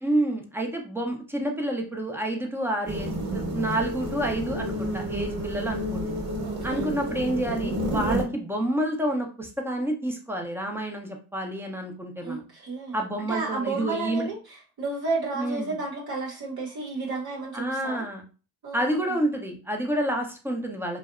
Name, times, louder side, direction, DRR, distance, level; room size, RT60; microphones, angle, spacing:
voice 1, 0.0-6.1 6.6-12.4 12.9-14.3 15.4-15.8 17.5-18.2 18.7-21.0, right 1 dB, 5° right, 2 dB, 0.5 m, -29 dB
sound 1, 2.9-8.2, right 1 dB, 30° right, 1.0 m, -30 dB
voice 2, 6.4-6.9 12.2-18.0 18.6-19.2, right 3 dB, 55° right, -2 dB, 0.9 m, -32 dB
2.6 x 2.1 x 2.4 m, 0.35 s
supercardioid pair, 70°, 45 cm